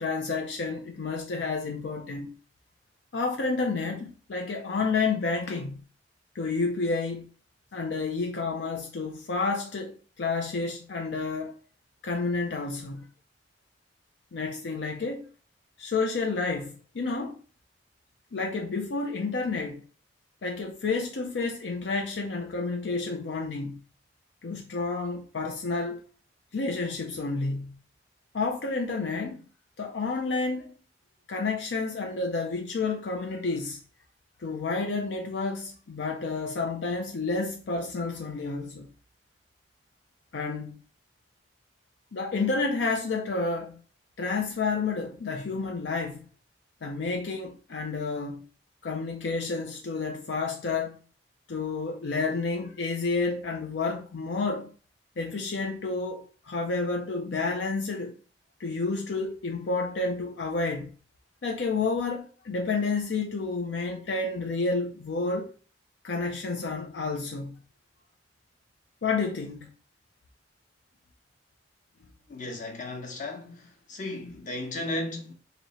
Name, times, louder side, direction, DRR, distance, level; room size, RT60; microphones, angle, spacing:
voice 1, 0.0-2.3 3.1-5.8 6.3-7.3 7.7-11.5 12.0-13.1 14.3-15.3 15.8-17.4 18.3-19.8 20.4-23.8 24.4-26.0 26.5-27.8 28.3-29.4 29.8-30.7 31.3-33.8 34.4-38.9 40.3-40.8 42.1-43.8 44.2-46.2 46.8-48.4 48.8-51.0 51.5-54.7 55.2-58.1 58.6-60.9 61.4-65.5 66.0-67.6 69.0-69.7, left 3 dB, 75° left, 0.5 m, -30 dB
voice 2, 72.3-75.3, left 2 dB, 45° left, 0.9 m, -35 dB
3.0 x 2.8 x 4.1 m
head